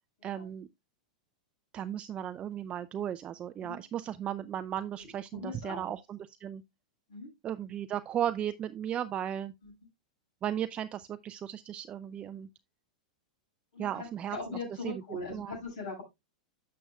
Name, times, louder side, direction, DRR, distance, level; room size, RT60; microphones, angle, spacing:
voice 1, 0.2-0.7 1.7-6.6 7.4-9.5 10.4-12.5 13.8-14.6 14.8-14.9 15.3-15.5, right 10 dB, 30° right, 0.4 m, -35 dB
voice 2, 5.0-5.9 7.1-7.3 9.6-9.7 13.7-16.0, left 3 dB, 65° left, 6.6 m, -41 dB
11.5 x 6.6 x 2.3 m
hypercardioid pair, 100°, 4 cm